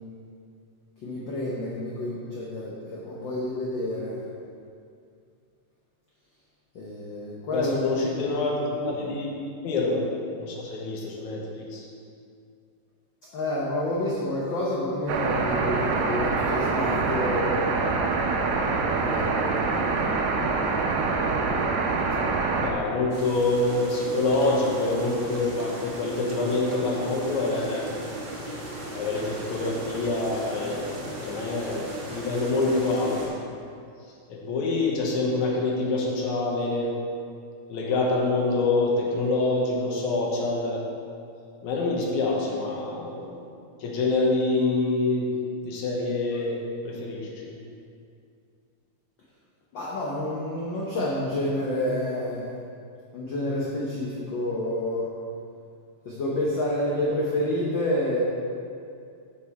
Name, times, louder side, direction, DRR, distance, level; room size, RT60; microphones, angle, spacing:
voice 1, 1.0-4.2 6.7-8.0 8.8-8.9 13.3-17.7 19.0-19.6 49.7-52.4 53.1-55.1 56.0-58.2, left 1 dB, 65° left, -5 dB, 1.2 m, -28 dB
voice 2, 7.5-9.3 9.6-10.1 10.4-11.9 22.6-27.9 28.9-33.4 34.3-36.9 37.7-40.8 41.6-43.4 43.8-45.4 45.6-47.5, left 2 dB, 80° left, -2 dB, 2.5 m, -26 dB
sound 1, 15.1-22.7, right 4 dB, 80° right, 1.9 m, -25 dB
sound 2, 23.1-33.3, right 1 dB, 45° right, 2.0 m, -37 dB
7.7 x 6.1 x 4.6 m, 2.4 s
omnidirectional pair, 3.3 m